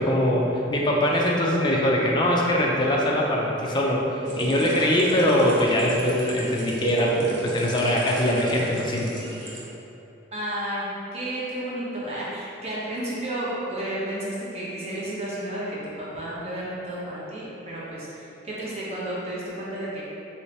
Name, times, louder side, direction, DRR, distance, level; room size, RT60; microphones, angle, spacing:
voice 1, 0.0-9.2, left 1 dB, 25° left, -2 dB, 0.3 m, -22 dB
sound 1, 4.2-9.6, right 3 dB, 70° right, 0.5 m, -33 dB
voice 2, 10.3-20.0, right 1 dB, 35° right, -7 dB, 0.7 m, -32 dB
3.2 x 3.0 x 2.7 m, 3.0 s
head